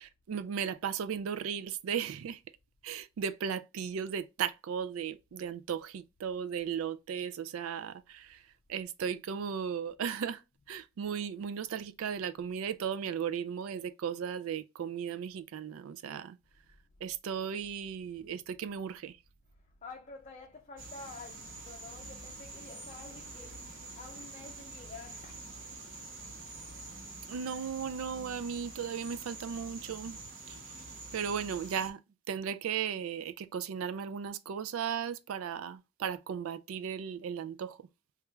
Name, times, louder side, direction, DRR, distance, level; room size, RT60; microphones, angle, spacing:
voice 1, 0.0-2.4 2.8-8.4 8.7-10.4 10.7-16.4 17.0-19.2 27.3-30.2 30.5-30.6 31.1-32.0 32.3-37.9, right 7 dB, 90° right, 0.3 m, -36 dB
voice 2, 19.8-26.0, left 3 dB, 35° left, 0.5 m, -49 dB
sound 1, 20.8-31.9, right 3 dB, 65° right, 0.9 m, -46 dB
3.0 x 2.3 x 3.4 m
head